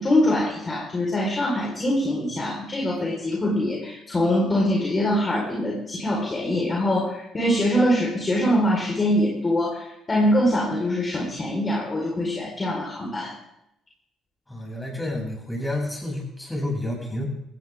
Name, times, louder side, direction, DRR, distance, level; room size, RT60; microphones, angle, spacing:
voice 1, 0.0-13.3, left 1 dB, 30° left, -2 dB, 4.5 m, -23 dB
voice 2, 14.5-17.2, left 1 dB, 10° left, -1 dB, 7.7 m, -30 dB
17.0 x 16.0 x 3.7 m, 0.82 s
supercardioid pair, 75°, 0 cm